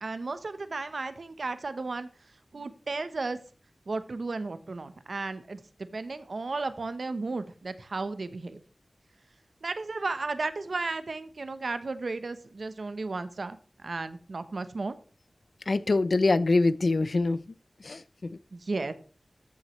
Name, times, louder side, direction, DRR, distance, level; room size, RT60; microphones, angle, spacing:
voice 1, 0.0-2.1 2.5-3.4 3.9-5.6 5.9-8.6 9.6-14.9 18.5-18.9, right 3 dB, 75° right, 0.8 m, -34 dB
voice 2, 15.7-17.5 17.8-18.4, left 3 dB, 70° left, 0.5 m, -25 dB
14.0 x 6.2 x 3.1 m
wide cardioid pair, 60°, 0 cm